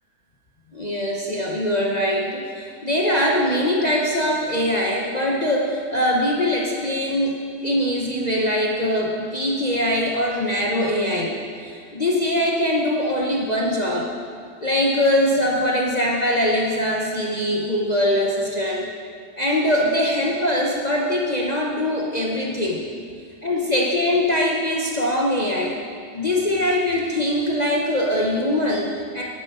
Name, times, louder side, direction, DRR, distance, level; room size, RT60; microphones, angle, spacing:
voice 1, 0.7-7.4 7.6-14.1 14.6-18.9 19.4-22.8 23.4-25.8 26.1-29.2, left 1 dB, 30° left, -3 dB, 0.9 m, -22 dB
10.5 x 9.0 x 5.6 m, 2.1 s
omnidirectional pair, 1.8 m